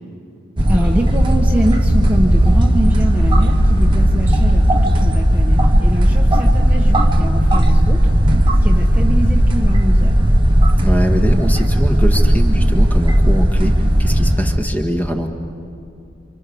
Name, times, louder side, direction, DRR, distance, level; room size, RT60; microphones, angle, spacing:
sound 1, 0.6-14.6, equal, 25° right, 1.2 m, -14 dB
voice 1, 0.7-8.0 8.6-10.3, equal, 10° right, -1 dB, 1.3 m, -24 dB
voice 2, 10.8-13.7 14.0-15.3, equal, 10° left, 2 dB, 1.8 m, -22 dB
29.5 x 26.0 x 7.0 m, 2.5 s
head